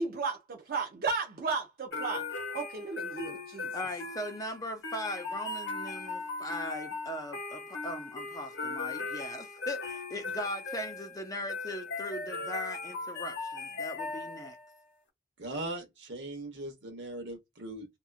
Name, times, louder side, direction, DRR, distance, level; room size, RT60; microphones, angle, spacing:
voice 1, 0.0-2.2 2.5-3.7, right 4 dB, 50° right, 0.5 m, -34 dB
sound 1, 1.9-14.7, left 3 dB, 80° left, 0.9 m, -38 dB
voice 2, 3.7-14.6, left 1 dB, 20° left, 0.4 m, -39 dB
voice 3, 15.4-17.9, right 1 dB, 65° right, 1.1 m, -39 dB
2.8 x 2.3 x 2.4 m
head